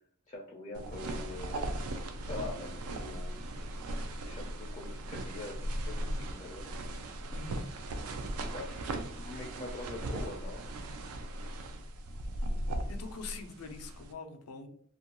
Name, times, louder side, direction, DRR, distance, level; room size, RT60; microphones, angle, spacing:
voice 1, 0.3-1.6 2.2-3.4 4.2-6.7 8.5-10.6, left 2 dB, 30° left, -1 dB, 0.4 m, -44 dB
sound 1, 0.7-14.1, right 1 dB, 75° right, 0.4 m, -38 dB
voice 2, 7.3-7.7 12.9-14.7, left 4 dB, 85° left, 5 dB, 0.5 m, -44 dB
2.5 x 2.2 x 2.8 m, 0.64 s
head